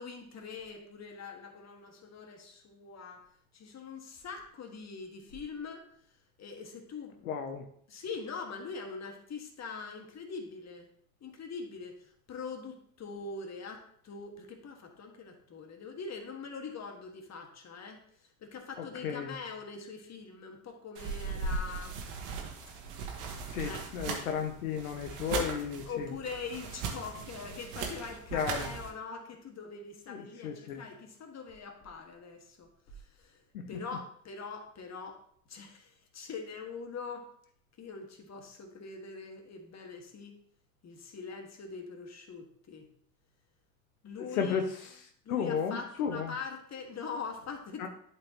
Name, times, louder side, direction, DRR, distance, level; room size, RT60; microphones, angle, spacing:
voice 1, 0.0-3.3 3.5-5.9 6.4-7.3 7.9-10.9 11.2-18.0 18.4-22.0 23.6-23.8 25.9-33.4 33.7-35.2 35.5-37.3 37.8-40.4 40.8-42.9 44.0-44.6 45.2-47.9, left 5 dB, 40° left, 4 dB, 1.6 m, -43 dB
voice 2, 7.2-7.7 18.8-19.3 23.5-26.1 28.3-28.7 30.1-30.8 33.5-33.7 44.3-45.0 45.3-46.3 47.8-47.9, left 7 dB, 85° left, 5 dB, 0.7 m, -34 dB
sound 1, 20.9-28.9, right 4 dB, 65° right, 1.4 m, -38 dB
11.5 x 4.3 x 2.9 m, 0.63 s
hypercardioid pair, 60°, 42 cm